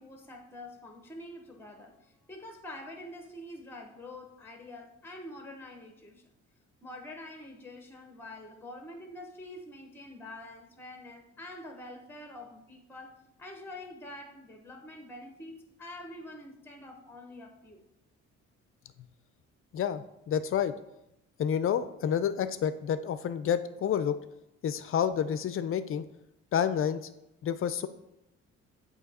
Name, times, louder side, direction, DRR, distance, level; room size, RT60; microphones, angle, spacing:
voice 1, 0.0-6.2 6.8-17.8, left 1 dB, 5° left, 0.9 m, -46 dB
voice 2, 19.7-20.7 21.4-24.2 24.6-26.0 26.5-27.0 27.4-27.9, left 8 dB, 45° left, 0.4 m, -29 dB
7.9 x 2.8 x 4.2 m
cardioid pair, 90°, 30 cm